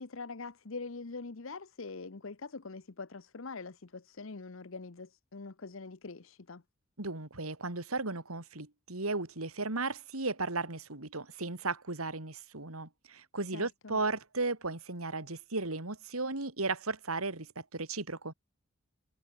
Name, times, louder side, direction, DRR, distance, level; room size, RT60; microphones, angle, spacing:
voice 1, 0.0-6.6 13.5-14.0, left 4 dB, 70° left, 0.9 m, -44 dB
voice 2, 7.0-18.3, right 3 dB, 85° right, 3.2 m, -35 dB
head